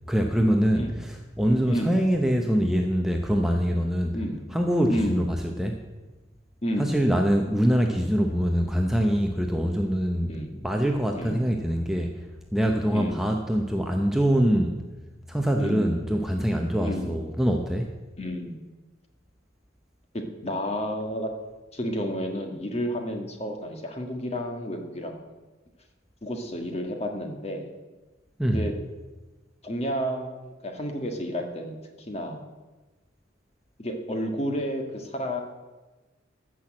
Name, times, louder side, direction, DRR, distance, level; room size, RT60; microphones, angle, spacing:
voice 1, 0.1-4.2 4.5-5.8 6.8-12.2 12.5-14.8 15.3-17.9 28.4-28.7, equal, ahead, 2 dB, 0.7 m, -24 dB
voice 2, 1.7-2.0 4.1-4.4 4.9-5.3 6.6-6.9 10.3-10.5 11.1-11.4 12.9-13.2 15.6-16.0 16.8-17.2 18.2-18.6 20.1-21.3 21.7-25.2 26.2-27.7 28.5-28.7 29.6-31.8 32.1-32.5 33.8-35.4, equal, 35° left, 3 dB, 1.6 m, -31 dB
14.5 x 6.1 x 7.6 m, 1.2 s
head